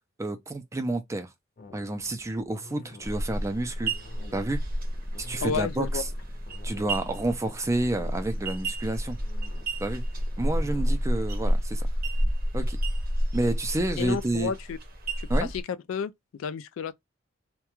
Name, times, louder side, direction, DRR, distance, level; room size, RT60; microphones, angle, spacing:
voice 1, 0.2-1.3 1.7-3.9 4.3-4.6 5.2-6.1 6.6-9.2 9.8-10.0 10.4-11.9 12.5-12.8 13.3-14.5 15.3-15.5, right 2 dB, 15° right, 0.4 m, -29 dB
sound 1, 1.6-11.0, left 2 dB, 45° left, 0.6 m, -49 dB
sound 2, 3.0-15.6, equal, 45° right, 0.7 m, -30 dB
voice 2, 5.4-6.0 14.0-14.8 15.2-16.9, left 6 dB, 80° left, 0.3 m, -31 dB
2.3 x 2.2 x 2.9 m
head